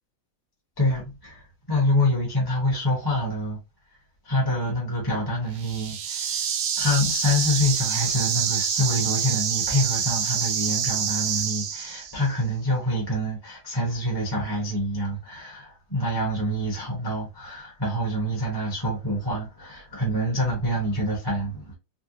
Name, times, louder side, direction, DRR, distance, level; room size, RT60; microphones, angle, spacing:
voice 1, 0.8-1.4 1.7-3.6 4.2-6.4 6.8-21.7, left 1 dB, 15° left, 1.1 m, -26 dB
sound 1, 5.5-12.3, right 8 dB, 65° right, 0.9 m, -27 dB
3.9 x 2.3 x 2.9 m
omnidirectional pair, 1.7 m